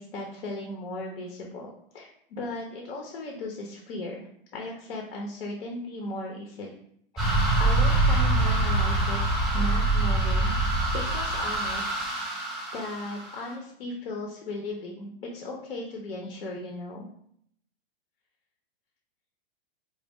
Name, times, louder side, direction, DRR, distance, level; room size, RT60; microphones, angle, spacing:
voice 1, 0.0-4.3 4.5-6.7 7.1-7.3 7.6-10.6 10.9-12.0 12.7-17.1, left 2 dB, 85° left, 0 dB, 0.9 m, -37 dB
sound 1, 7.2-13.5, right 2 dB, ahead, 0.4 m, -25 dB
4.2 x 2.1 x 3.5 m, 0.68 s
hypercardioid pair, 150°, 29 cm